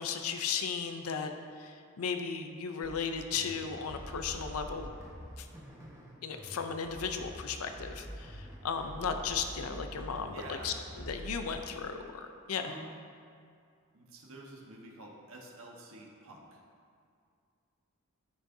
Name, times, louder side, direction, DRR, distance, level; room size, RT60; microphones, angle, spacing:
voice 1, 0.0-1.3 1.6-4.9 5.4-5.5 6.2-12.7, left 6 dB, 85° left, 6 dB, 0.5 m, -36 dB
sound 1, 2.8-11.6, equal, 15° right, 1.2 m, -46 dB
voice 2, 10.3-10.8 12.6-13.0 13.9-16.6, right 2 dB, 70° right, -1 dB, 1.2 m, -48 dB
13.5 x 6.4 x 2.7 m, 2.3 s
head